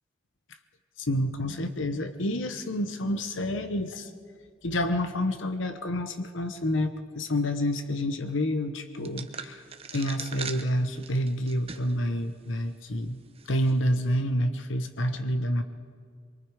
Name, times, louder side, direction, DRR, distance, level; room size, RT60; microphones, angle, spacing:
voice 1, 1.0-4.1 4.6-9.6 9.9-13.2 13.5-15.6, left 1 dB, 75° left, 8 dB, 1.0 m, -28 dB
sound 1, 9.0-12.0 12.4-12.5 13.4-13.7, right 6 dB, 30° right, 1.0 m, -40 dB
24.0 x 23.0 x 4.9 m, 2.2 s
head